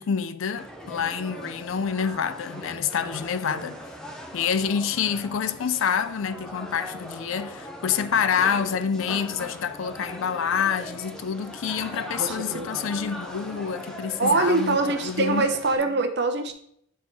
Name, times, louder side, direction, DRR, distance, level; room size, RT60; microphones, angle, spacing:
voice 1, 0.0-3.8 4.3-15.5, left 7 dB, 70° left, 0.4 m, -27 dB
sound 1, 0.6-15.8, equal, 5° left, 0.5 m, -40 dB
voice 2, 12.2-12.9 14.2-16.5, right 3 dB, 55° right, 0.7 m, -24 dB
7.2 x 4.1 x 3.7 m
head